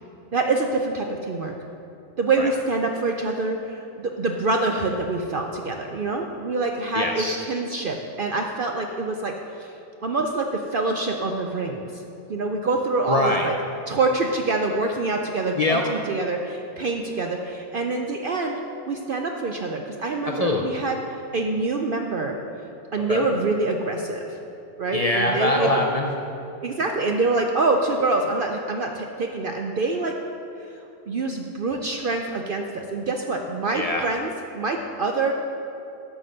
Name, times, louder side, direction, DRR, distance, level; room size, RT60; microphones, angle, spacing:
voice 1, 0.3-1.5 2.2-9.7 10.0-12.0 12.3-13.5 13.9-18.6 18.9-21.0 21.3-22.4 22.9-24.4 24.8-25.8 26.6-30.2 31.1-35.3, right 3 dB, 65° right, 3 dB, 0.5 m, -25 dB
voice 2, 6.9-7.4 13.1-13.5 15.6-15.8 20.3-20.6 23.1-23.2 24.9-26.1 33.7-34.0, left 2 dB, 70° left, 1 dB, 0.3 m, -23 dB
9.3 x 6.0 x 6.5 m, 2.9 s
omnidirectional pair, 1.6 m